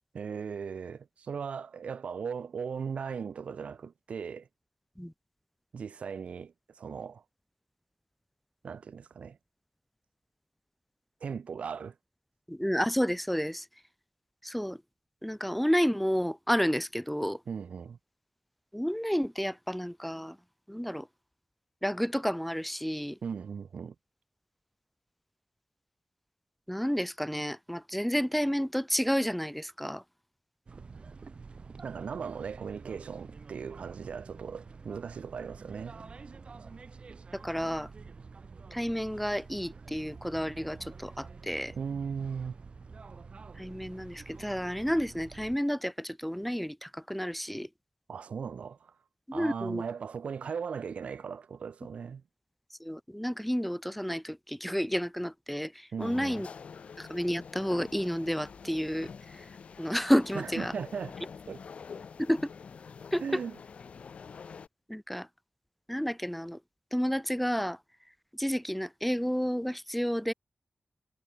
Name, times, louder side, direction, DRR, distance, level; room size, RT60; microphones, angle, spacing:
voice 1, 0.1-4.5 5.7-7.2 8.6-9.4 11.2-11.9 17.5-18.0 23.2-23.9 31.8-36.0 41.8-42.6 48.1-48.9 49.3-52.2 55.9-56.4 60.3-61.1 61.5-61.6 63.2-63.6, right 6 dB, 90° right, 3.1 m, -38 dB
voice 2, 12.5-13.7 14.4-14.8 15.2-17.4 18.7-20.4 20.7-21.1 21.8-23.2 26.7-30.0 37.3-37.9 38.7-41.7 43.6-47.7 49.3-49.8 52.8-56.5 57.0-59.5 59.8-60.7 62.2-62.5 63.1-63.4 64.9-65.3 65.9-66.6 66.9-67.8 68.3-70.3, equal, 5° left, 0.6 m, -31 dB
sound 1, 30.7-45.6, right 4 dB, 60° right, 1.7 m, -48 dB
sound 2, 56.0-64.7, left 6 dB, 80° left, 1.1 m, -46 dB
cardioid pair, 60°, 2 cm